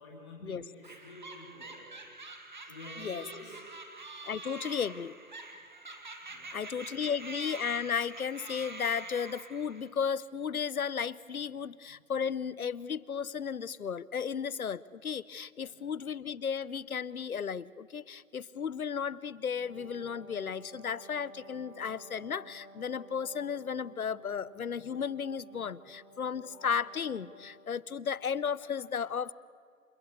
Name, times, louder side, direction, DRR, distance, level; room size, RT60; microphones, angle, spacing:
voice 1, 0.0-1.9 2.7-3.7 6.3-6.6 15.6-15.7, left 2 dB, 20° left, -5 dB, 3.7 m, -49 dB
sound 1, 0.8-9.9, right 3 dB, 30° right, 1.8 m, -46 dB
voice 2, 4.2-5.2 6.5-29.3, left 7 dB, 75° left, 21 dB, 0.8 m, -34 dB
Wind instrument woodwind instrument, 19.5-27.7, right 1 dB, 90° right, 7.0 m, -54 dB
28.0 x 16.5 x 7.0 m, 2.4 s
hypercardioid pair, 175°, 43 cm